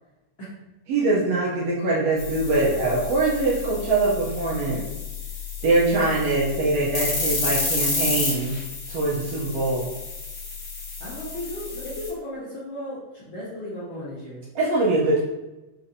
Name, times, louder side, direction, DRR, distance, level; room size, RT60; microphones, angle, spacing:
voice 1, 0.9-4.9 5.6-8.6 8.9-9.9 14.5-15.2, right 2 dB, 80° right, -6 dB, 1.4 m, -23 dB
sound 1, 2.2-12.1, left 4 dB, 55° left, 2.2 m, -31 dB
voice 2, 11.0-14.5, left 1 dB, 80° left, -9 dB, 1.1 m, -35 dB
5.5 x 2.5 x 2.6 m, 1.0 s
omnidirectional pair, 3.6 m